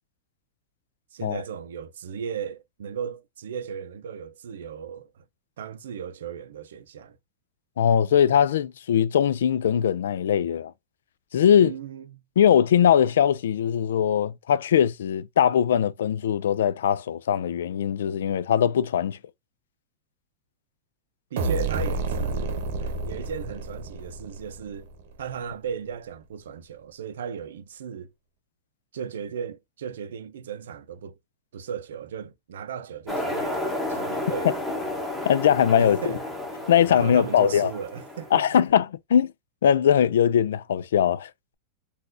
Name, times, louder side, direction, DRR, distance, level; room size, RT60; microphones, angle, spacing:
voice 1, 1.1-5.2 5.6-7.2 11.6-12.2 21.3-24.9 25.2-28.1 28.9-31.1 31.5-33.6 33.9-34.6 35.8-36.2 36.9-38.6, right 7 dB, 90° right, 0.6 m, -36 dB
voice 2, 7.8-10.7 11.3-11.7 12.4-19.2 35.3-36.0 36.7-37.7 38.3-39.3 39.6-41.5, left 9 dB, 85° left, 0.3 m, -21 dB
sound 1, 21.4-25.0, right 3 dB, 55° right, 0.8 m, -30 dB
sound 2, 33.1-38.6, left 1 dB, 5° left, 0.8 m, -32 dB
3.9 x 2.4 x 2.5 m
supercardioid pair, 170°, 0 cm